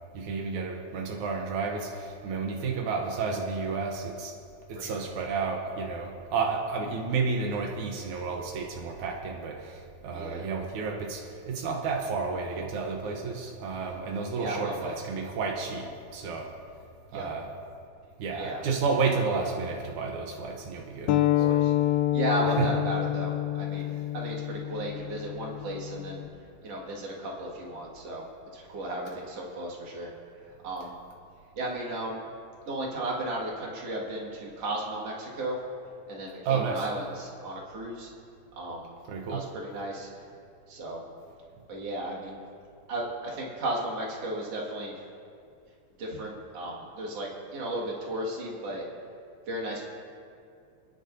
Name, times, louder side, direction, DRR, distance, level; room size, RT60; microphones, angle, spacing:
voice 1, 0.1-4.4 4.7-16.5 17.1-17.5 18.2-21.6 22.6-22.7 36.4-36.9 39.1-39.4, right 4 dB, 80° right, 1 dB, 1.7 m, -31 dB
voice 2, 10.1-10.5 14.4-15.0 17.1-17.3 18.3-18.6 21.3-21.7 22.1-26.2 26.6-28.2 28.5-30.1 30.4-30.9 31.6-32.2 32.7-35.6 36.1-38.1 38.6-38.9 39.3-40.1 40.7-41.0 41.7-42.4 42.9-45.1 46.0-48.9 49.5-49.8, right 1 dB, 45° right, -2 dB, 2.5 m, -34 dB
sound 1, 21.1-26.3, left 13 dB, 80° left, 2.3 m, -27 dB
29.5 x 10.5 x 2.7 m, 2.4 s
omnidirectional pair, 4.9 m